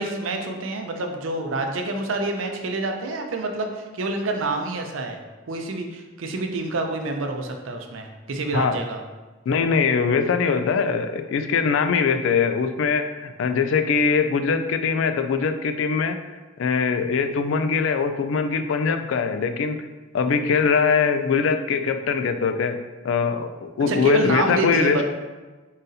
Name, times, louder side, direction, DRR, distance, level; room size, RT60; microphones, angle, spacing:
voice 1, 0.0-5.2 5.5-9.0 23.8-25.0, right 2 dB, 90° right, 4 dB, 0.5 m, -27 dB
voice 2, 9.5-16.2 16.6-19.9 20.1-25.0, left 5 dB, 80° left, 8 dB, 0.3 m, -22 dB
3.9 x 3.9 x 2.6 m, 1.3 s
head